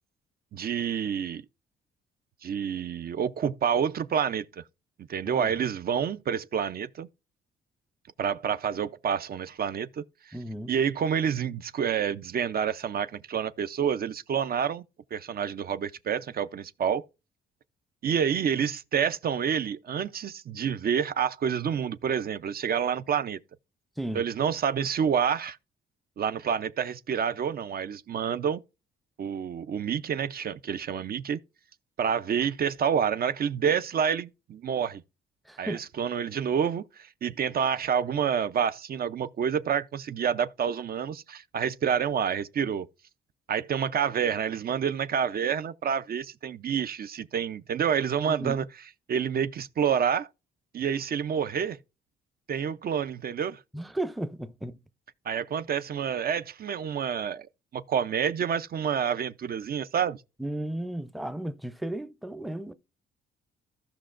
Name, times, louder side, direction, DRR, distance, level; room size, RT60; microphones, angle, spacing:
voice 1, 0.5-1.4 2.4-4.6 5.1-7.1 8.2-10.3 10.7-14.8 15.1-17.0 18.0-23.4 24.1-25.6 26.2-28.6 29.2-31.4 32.0-35.0 35.6-42.9 43.5-48.6 49.1-50.3 50.7-51.8 52.5-53.6 55.3-57.5 57.7-60.2, right 7 dB, 50° right, 0.5 m, -28 dB
voice 2, 10.3-10.8 24.0-24.2 35.5-35.9 48.3-48.6 53.7-54.8 60.4-62.7, right 1 dB, ahead, 0.5 m, -34 dB
15.0 x 5.7 x 2.5 m
cardioid pair, 90°, 20 cm